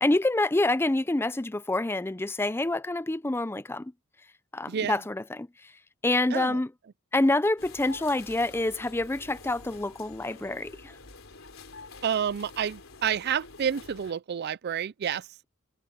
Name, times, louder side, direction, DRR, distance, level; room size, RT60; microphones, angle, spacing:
voice 1, 0.0-3.9 4.5-5.5 6.0-6.7 7.1-10.9, left 2 dB, 10° left, 0.5 m, -27 dB
voice 2, 4.7-5.0 6.3-6.6 12.0-15.3, right 8 dB, 50° right, 0.4 m, -29 dB
sound 1, 7.6-14.1, left 3 dB, 75° left, 3.9 m, -48 dB
head